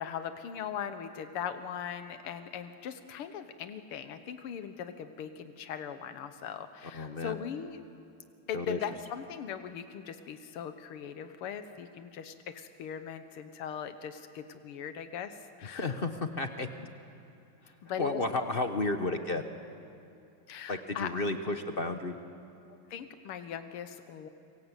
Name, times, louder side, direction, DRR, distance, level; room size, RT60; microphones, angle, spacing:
voice 1, 0.0-7.8 8.5-16.0 17.8-18.4 20.5-21.1 22.9-24.3, left 8 dB, 85° left, 9 dB, 2.0 m, -40 dB
voice 2, 6.9-7.4 8.5-8.8 15.7-16.9 18.0-19.4 20.7-22.2, left 2 dB, 40° left, 7 dB, 0.9 m, -32 dB
26.5 x 24.5 x 8.2 m, 2.6 s
omnidirectional pair, 2.4 m